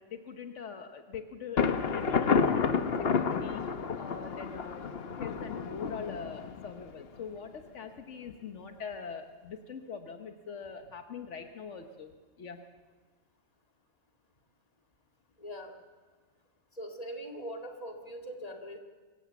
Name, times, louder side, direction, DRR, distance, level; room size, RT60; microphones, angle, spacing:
voice 1, 0.1-3.6 4.0-4.9 5.2-12.1 12.4-12.6, left 6 dB, 75° left, 6 dB, 1.4 m, -43 dB
Thunder, 1.6-7.2, left 5 dB, 55° left, 1.1 m, -30 dB
voice 2, 15.4-15.7 16.8-18.8, equal, 30° left, 3 dB, 2.2 m, -41 dB
25.5 x 16.0 x 7.0 m, 1.4 s
omnidirectional pair, 1.2 m